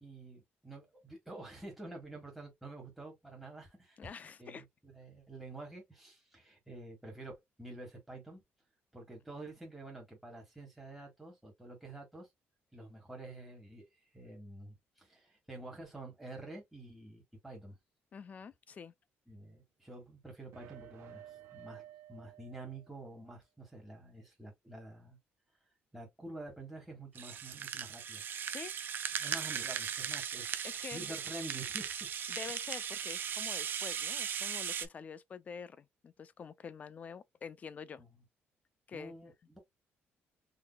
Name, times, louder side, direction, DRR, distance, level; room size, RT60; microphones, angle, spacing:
voice 1, 0.0-4.0 4.4-8.4 8.9-12.3 12.7-17.8 19.3-21.8 22.1-25.2 25.9-28.2 29.2-32.1 38.0-38.1 38.9-39.6, right 2 dB, 5° right, 1.4 m, -48 dB
voice 2, 4.0-4.6 18.1-18.9 28.5-28.7 29.2-29.4 30.6-31.1 32.3-38.0 38.9-39.3, left 6 dB, 35° left, 0.4 m, -47 dB
sound 1, 20.5-23.2, right 11 dB, 80° right, 1.0 m, -53 dB
Rattle (instrument), 27.1-34.9, right 8 dB, 50° right, 0.5 m, -38 dB
3.8 x 2.7 x 2.2 m
cardioid pair, 135°, 5 cm